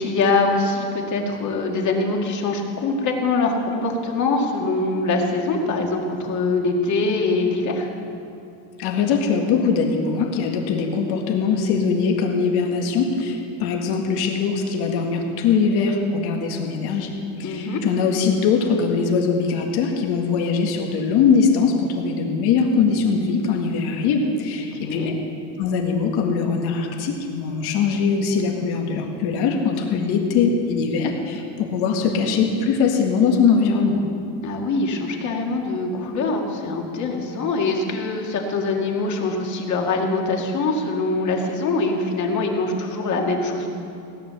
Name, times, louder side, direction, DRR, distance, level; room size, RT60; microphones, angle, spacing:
voice 1, 0.0-7.9 17.4-17.8 24.7-25.1 34.4-43.7, left 3 dB, 45° left, 1 dB, 2.2 m, -23 dB
voice 2, 8.8-17.1 17.4-25.1 25.6-34.0, left 5 dB, 65° left, 2 dB, 2.0 m, -21 dB
17.0 x 9.7 x 7.0 m, 2.7 s
cardioid pair, 145°, 41 cm